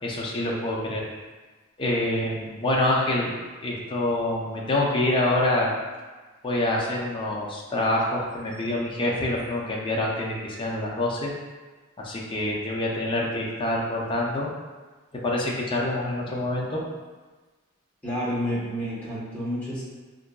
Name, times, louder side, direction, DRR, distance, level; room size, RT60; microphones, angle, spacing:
voice 1, 0.0-1.0 1.8-3.3 3.6-5.7 6.4-11.3 12.0-14.5 15.2-16.8, left 1 dB, 25° left, -3 dB, 0.4 m, -26 dB
voice 2, 18.0-19.8, equal, 5° left, -10 dB, 1.0 m, -29 dB
4.4 x 2.5 x 2.2 m, 1.3 s
head